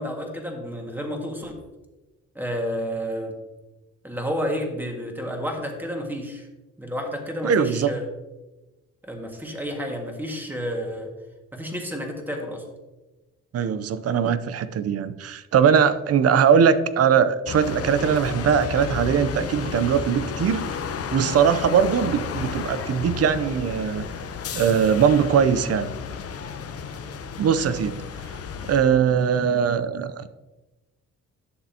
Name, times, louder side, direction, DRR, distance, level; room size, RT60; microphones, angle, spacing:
voice 1, 0.0-1.5 2.4-3.3 4.0-6.5 6.8-8.0 9.0-11.1 11.5-12.6, equal, 5° right, 2 dB, 1.8 m, -30 dB
voice 2, 7.4-7.9 13.5-20.7 21.1-24.0 24.5-25.9 27.4-28.0 28.7-30.3, right 7 dB, 55° right, 13 dB, 0.6 m, -21 dB
sound 1, 17.5-28.8, left 6 dB, 50° left, 0.8 m, -32 dB
11.0 x 6.8 x 2.9 m, 1.1 s
cardioid pair, 90°, 30 cm